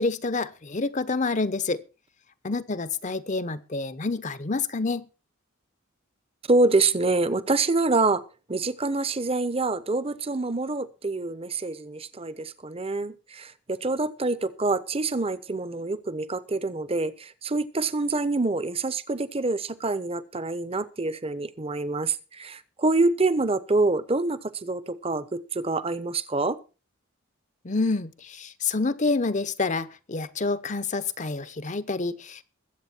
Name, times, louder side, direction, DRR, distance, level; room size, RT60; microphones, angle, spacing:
voice 1, 0.0-1.8 2.4-5.1 27.6-32.4, left 3 dB, 35° left, 0.8 m, -28 dB
voice 2, 6.5-8.2 8.5-26.6, right 3 dB, 30° right, 0.9 m, -26 dB
21.0 x 8.1 x 4.5 m
head